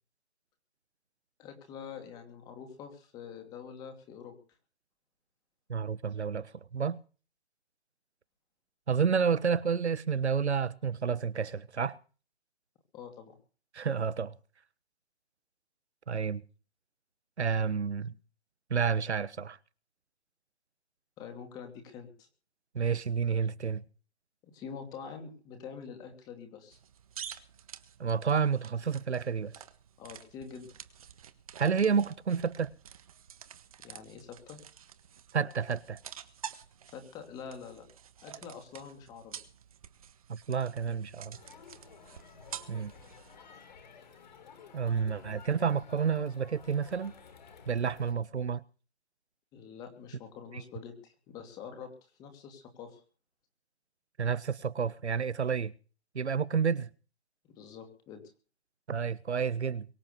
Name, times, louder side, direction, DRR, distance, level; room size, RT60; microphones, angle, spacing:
voice 1, 1.4-4.3 12.9-13.4 21.2-22.3 24.5-26.8 30.0-30.7 33.8-34.6 36.9-37.9 38.2-39.3 49.5-53.0 57.4-58.2, left 7 dB, 10° left, 2.6 m, -46 dB
voice 2, 5.7-7.0 8.9-12.0 13.7-14.4 16.1-16.4 17.4-18.1 18.7-19.6 22.7-23.8 28.0-29.5 31.6-32.7 35.3-36.0 40.3-41.4 42.7-42.9 44.7-47.1 47.7-48.6 50.5-50.6 54.2-55.7 56.1-56.9 58.9-59.9, right 6 dB, 85° right, 1.4 m, -30 dB
sound 1, 26.7-43.4, right 8 dB, 35° right, 1.4 m, -49 dB
Crowd, 41.3-48.1, left 6 dB, 40° left, 4.3 m, -53 dB
23.0 x 8.9 x 6.9 m
hypercardioid pair, 165°, 33 cm